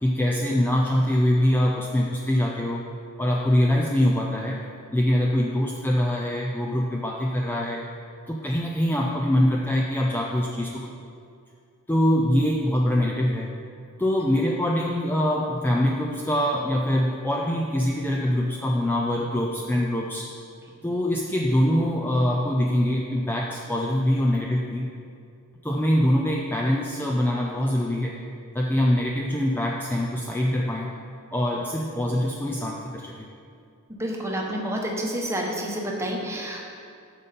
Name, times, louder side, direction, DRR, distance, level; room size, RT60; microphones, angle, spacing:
voice 1, 0.0-2.9 3.2-4.6 4.9-7.9 8.3-10.9 11.9-13.5 14.0-20.3 20.8-24.9 25.6-28.2 28.5-30.9 31.3-33.3, left 1 dB, 10° left, -1 dB, 0.4 m, -24 dB
voice 2, 33.9-36.6, right 1 dB, 10° right, -1 dB, 1.0 m, -29 dB
9.0 x 6.7 x 4.2 m, 2.3 s
head